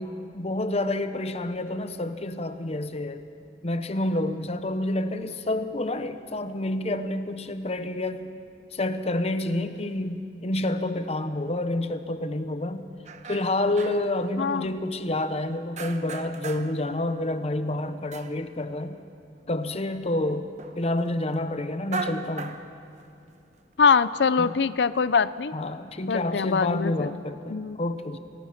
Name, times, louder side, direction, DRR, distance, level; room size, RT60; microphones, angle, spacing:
voice 1, 0.0-3.2 3.6-8.3 8.7-12.9 13.3-19.0 19.5-20.5 20.8-22.6 24.4-24.6 25.5-28.2, left 1 dB, 35° left, 10 dB, 0.9 m, -28 dB
sound 1, 13.1-14.2 14.6-15.4 15.8-16.8 17.1-19.0 19.4-19.5 19.7-19.9 20.6-20.8 21.7-23.3 23.8-24.3, right 4 dB, 40° right, 1.1 m, -38 dB
voice 2, 14.4-14.8 23.8-25.5 26.1-27.1 27.5-27.8, left 5 dB, 75° left, 16 dB, 0.5 m, -23 dB
29.0 x 19.5 x 5.9 m, 2.5 s
head